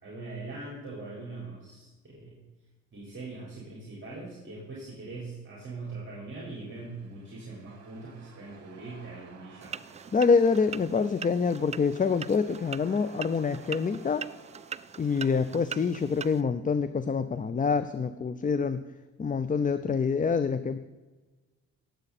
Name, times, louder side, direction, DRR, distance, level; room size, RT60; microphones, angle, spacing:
voice 1, 0.0-2.4 2.9-9.7, right 3 dB, 40° right, -4 dB, 4.4 m, -41 dB
sound 1, 6.4-16.3, right 6 dB, 55° right, 2.3 m, -54 dB
sound 2, 9.6-16.4, right 7 dB, 25° right, 0.3 m, -42 dB
voice 2, 10.1-14.3 15.0-18.8 19.2-20.8, left 5 dB, 25° left, 12 dB, 0.6 m, -26 dB
18.5 x 7.9 x 4.2 m, 1.2 s
cardioid pair, 90°, 30 cm